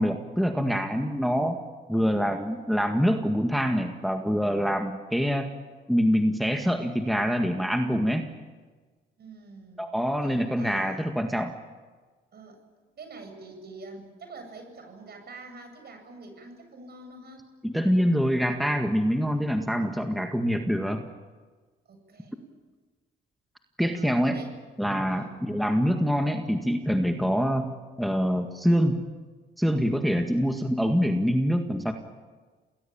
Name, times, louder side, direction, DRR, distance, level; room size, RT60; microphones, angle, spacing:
voice 1, 0.0-1.6 1.9-5.5 5.9-8.2 9.8-11.5 17.6-21.1 23.8-24.4 24.8-27.7 28.0-29.0 29.6-31.9, equal, ahead, 4 dB, 1.8 m, -25 dB
voice 2, 9.2-9.9 10.2-11.1 12.3-12.6 13.0-17.5 21.8-22.4 23.8-24.5 25.1-25.3 30.2-30.5, right 3 dB, 55° right, 5 dB, 8.0 m, -46 dB
28.0 x 19.5 x 8.8 m, 1.4 s
cardioid pair, 90°, 20 cm